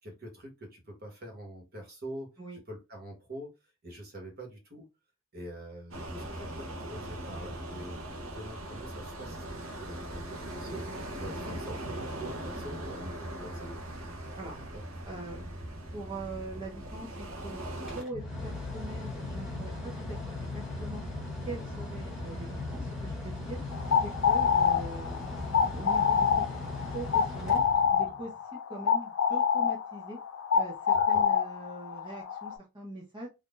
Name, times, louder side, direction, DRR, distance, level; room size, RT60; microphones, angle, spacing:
voice 1, 0.0-2.3 2.7-3.5 3.8-4.8 5.3-13.7 14.4-14.8 15.3-15.4 30.9-31.2, right 1 dB, 45° right, 0 dB, 1.4 m, -45 dB
sound 1, 5.9-18.0, right 1 dB, 70° right, 0.9 m, -40 dB
voice 2, 15.1-15.4 15.9-21.0 21.4-23.6 24.0-26.5 26.9-27.6 27.9-30.2 30.5-33.3, right 2 dB, 20° right, -6 dB, 0.8 m, -42 dB
Mechanical fan, 17.8-28.3, left 2 dB, ahead, 1.4 m, -38 dB
sound 2, 23.7-32.6, left 7 dB, 75° left, 0.6 m, -26 dB
3.8 x 2.6 x 2.5 m, 0.26 s
head